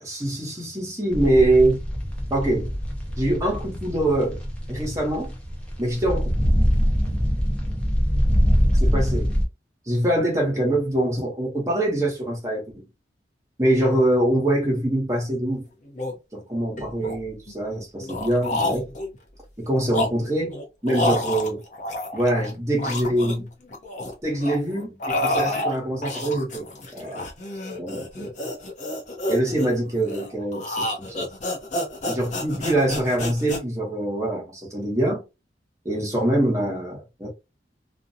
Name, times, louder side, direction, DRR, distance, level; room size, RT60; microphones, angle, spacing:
voice 1, 0.0-1.8 2.3-2.7 3.2-4.4 4.7-5.3 5.8-6.3 8.7-9.3 9.9-12.8 13.6-15.6 16.3-18.9 19.6-20.5 20.8-21.6 22.1-23.5 24.2-26.7 26.9-27.2 27.8-28.3 29.3-31.3 32.1-35.2 35.8-37.3, right 1 dB, 20° right, 1.0 m, -24 dB
sound 1, 1.1-9.4, equal, 5° left, 0.7 m, -23 dB
sound 2, 15.5-15.6 15.9-16.1 16.8-17.5 18.0-19.2 19.7-22.5 22.8-24.1 24.4-33.6, left 1 dB, 45° left, 0.6 m, -29 dB
2.4 x 2.1 x 2.7 m
head